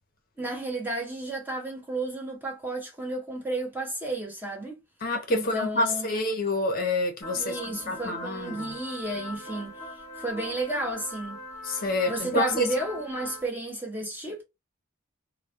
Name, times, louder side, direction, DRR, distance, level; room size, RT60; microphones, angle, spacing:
voice 1, 0.4-4.8 5.3-6.2 7.4-11.4 12.1-14.4, right 2 dB, 10° right, 0.6 m, -32 dB
voice 2, 5.0-8.7 11.6-12.7, left 2 dB, 45° left, 0.6 m, -28 dB
sound 1, 7.2-13.5, left 1 dB, 15° left, 1.1 m, -41 dB
2.2 x 2.1 x 2.7 m
head